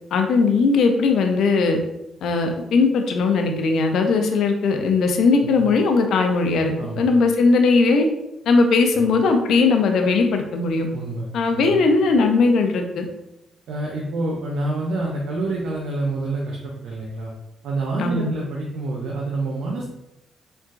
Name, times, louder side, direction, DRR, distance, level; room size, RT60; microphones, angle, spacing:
voice 1, 0.1-1.8 2.2-8.1 8.5-10.9 11.3-13.1 18.0-18.3, left 4 dB, 75° left, 4 dB, 0.5 m, -19 dB
voice 2, 10.9-11.3 11.5-11.7 13.7-17.3 17.6-19.9, right 2 dB, 80° right, -2 dB, 0.5 m, -27 dB
3.8 x 2.2 x 2.4 m, 0.87 s
supercardioid pair, 55°, 0 cm